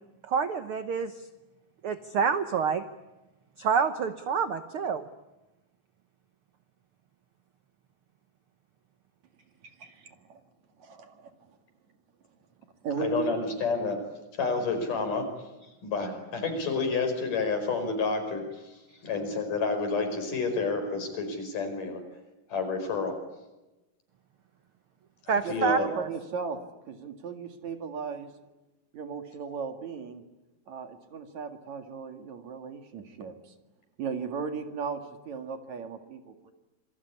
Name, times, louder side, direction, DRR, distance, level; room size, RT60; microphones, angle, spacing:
voice 1, 0.2-1.3 1.8-2.8 3.6-5.0 18.9-19.0 25.3-26.1, right 6 dB, 75° right, 10 dB, 1.2 m, -28 dB
voice 2, 9.6-10.4 10.8-11.6 12.8-13.4 25.4-26.6 26.9-28.3 28.9-30.2 30.7-33.5 34.0-36.5, right 6 dB, 55° right, 6 dB, 3.2 m, -37 dB
voice 3, 13.0-14.0 14.3-15.3 15.8-18.7 19.0-22.0 22.5-23.1 25.3-25.9, left 4 dB, 65° left, 6 dB, 6.5 m, -29 dB
27.0 x 22.5 x 9.7 m, 1.0 s
omnidirectional pair, 4.0 m